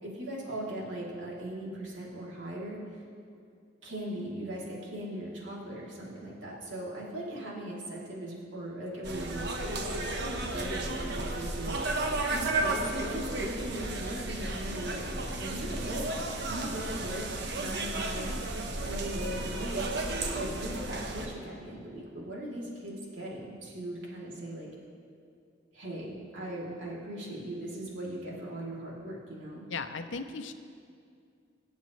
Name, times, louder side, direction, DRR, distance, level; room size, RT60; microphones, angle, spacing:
voice 1, 0.0-2.8 3.8-16.1 16.5-18.3 18.8-19.9 20.3-24.7 25.7-29.7, right 1 dB, 80° right, -5 dB, 2.9 m, -39 dB
sound 1, 9.0-21.3, right 2 dB, 65° right, 1.1 m, -33 dB
voice 2, 29.7-30.5, left 4 dB, 90° left, 9 dB, 0.7 m, -36 dB
24.0 x 8.3 x 3.2 m, 2.3 s
head